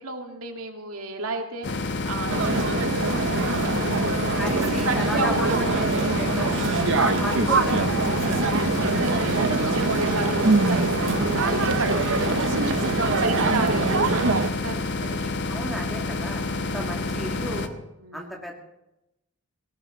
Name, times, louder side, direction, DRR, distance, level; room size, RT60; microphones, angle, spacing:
voice 1, 0.0-5.9 7.0-7.3 8.8-15.3 16.5-16.9 18.0-18.5, right 3 dB, 75° right, 4 dB, 2.2 m, -33 dB
sound 1, 1.6-17.7, left 3 dB, 50° left, 1.2 m, -29 dB
sound 2, 2.3-14.5, right 3 dB, 55° right, 0.9 m, -24 dB
voice 2, 4.4-6.6 7.0-8.7 12.0-12.3 15.5-17.7 18.1-18.5, equal, ahead, 0 dB, 2.4 m, -34 dB
18.5 x 17.0 x 4.0 m, 0.91 s
head